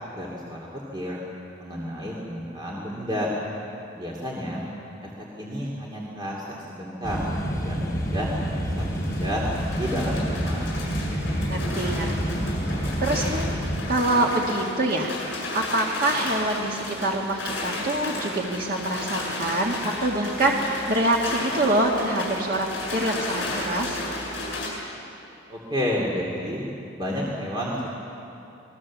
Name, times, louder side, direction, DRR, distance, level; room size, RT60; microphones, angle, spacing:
voice 1, 0.1-1.2 1.6-3.3 3.9-4.6 5.0-5.1 5.4-7.2 7.6-9.4 9.8-10.7 11.0-11.2 25.5-26.6 27.0-27.9, equal, 20° right, -3 dB, 2.5 m, -31 dB
sound 1, 7.0-13.8, equal, 15° left, 3.5 m, -28 dB
sound 2, 8.1-24.7, left 2 dB, 65° left, 7.8 m, -33 dB
voice 2, 11.5-12.1 13.0-13.5 13.9-15.1 15.5-24.0, right 1 dB, 45° right, -1 dB, 1.9 m, -25 dB
27.0 x 20.0 x 7.4 m, 2.9 s
head